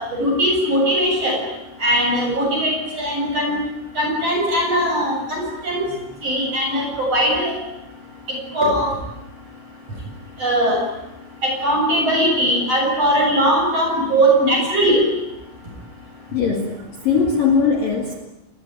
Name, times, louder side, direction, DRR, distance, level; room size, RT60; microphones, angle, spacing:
voice 1, 0.0-1.4 1.8-3.6 4.0-5.8 6.2-7.5 8.5-8.9 10.4-10.8 11.4-15.0, right 1 dB, 30° right, 1 dB, 8.2 m, -19 dB
voice 2, 16.3-18.1, left 5 dB, 55° left, 3 dB, 3.2 m, -20 dB
29.0 x 21.0 x 9.1 m, 0.94 s
omnidirectional pair, 5.9 m